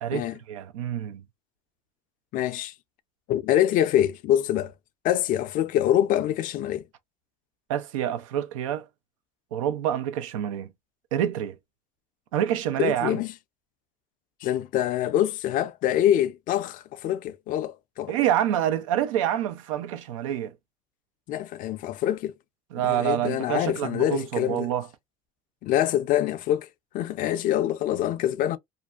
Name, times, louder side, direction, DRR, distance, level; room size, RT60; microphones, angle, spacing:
voice 1, 0.0-1.2 7.7-8.8 9.5-10.7 11.1-11.6 12.3-13.2 18.1-20.5 22.7-24.9, right 11 dB, 90° right, 0.4 m, -27 dB
voice 2, 2.3-2.7 3.3-4.7 5.0-6.8 12.8-13.3 14.4-18.2 21.3-22.3 22.8-24.7 25.6-26.7 26.9-28.6, left 11 dB, 55° left, 0.4 m, -25 dB
2.5 x 2.2 x 2.3 m
supercardioid pair, 80°, 16 cm